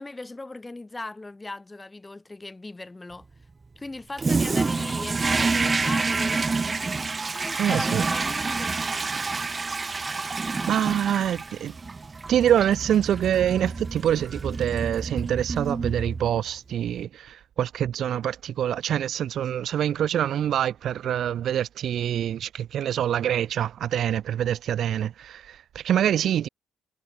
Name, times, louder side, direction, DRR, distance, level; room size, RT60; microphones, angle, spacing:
voice 1, 0.0-3.3 3.8-6.9 7.3-8.7 9.0-9.1, left 2 dB, 20° left, 4.1 m, -38 dB
Toilet flush, 4.2-16.5, right 4 dB, 30° right, 3.3 m, -28 dB
voice 2, 7.6-8.0 10.7-11.8 12.3-26.5, right 10 dB, 70° right, 0.6 m, -25 dB
cardioid pair, 90°, 0 cm